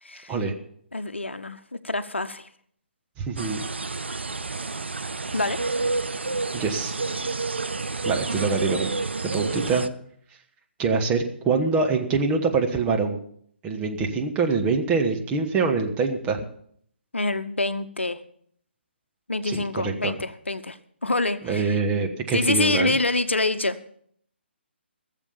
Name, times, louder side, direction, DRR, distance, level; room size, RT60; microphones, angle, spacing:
voice 1, 0.0-0.3 0.9-2.5 5.3-5.6 17.1-18.2 19.3-21.8 22.3-23.9, left 2 dB, 75° left, 11 dB, 0.9 m, -26 dB
voice 2, 3.2-3.6 6.5-7.0 8.0-8.9 9.2-9.8 10.8-13.2 13.6-16.4 19.4-20.1 21.4-23.0, right 4 dB, 15° right, 3 dB, 1.3 m, -24 dB
sound 1, 3.4-9.9, right 3 dB, 70° right, 0.7 m, -29 dB
17.0 x 7.4 x 7.0 m, 0.64 s
figure-of-eight pair, 135°, 6 cm